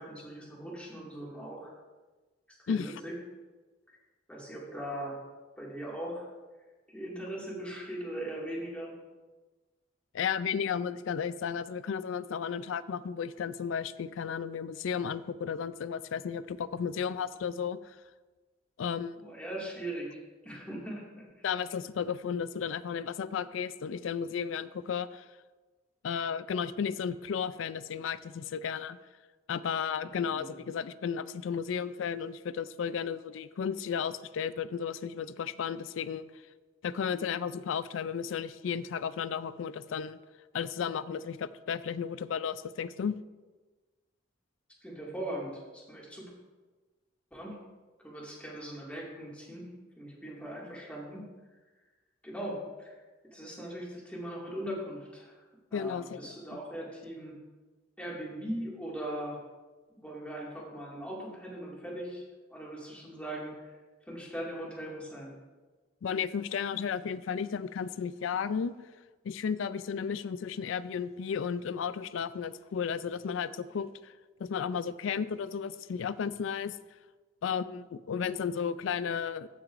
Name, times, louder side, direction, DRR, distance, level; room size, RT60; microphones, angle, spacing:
voice 1, 0.0-1.7 2.6-3.1 4.3-5.2 5.6-6.3 6.9-8.9 19.2-21.5 30.0-30.6 44.8-46.3 47.3-47.6 48.0-51.2 52.2-53.0 53.3-55.3 55.7-57.3 58.0-59.4 59.9-62.2 62.5-63.7 64.1-65.3, right 1 dB, 5° left, -4 dB, 2.1 m, -40 dB
voice 2, 10.1-17.8 18.8-19.2 21.4-25.2 26.0-29.0 29.5-36.2 36.8-40.2 40.5-43.2 55.7-56.3 66.0-68.7 69.2-74.1 74.4-76.8 77.4-79.5, left 7 dB, 75° left, 15 dB, 0.4 m, -33 dB
15.5 x 5.9 x 2.6 m, 1.3 s
head